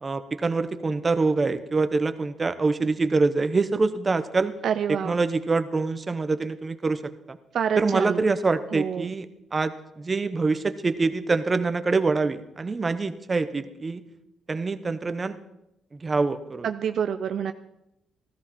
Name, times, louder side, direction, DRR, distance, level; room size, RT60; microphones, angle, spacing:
voice 1, 0.0-4.6 4.9-7.4 7.8-14.0 14.5-15.4 15.9-16.7, right 3 dB, 30° right, 11 dB, 0.9 m, -25 dB
voice 2, 4.6-5.2 7.5-8.2 8.7-9.1 16.6-17.5, right 8 dB, 65° right, 9 dB, 0.5 m, -27 dB
14.5 x 13.5 x 4.2 m, 0.87 s
cardioid pair, 90°, 0 cm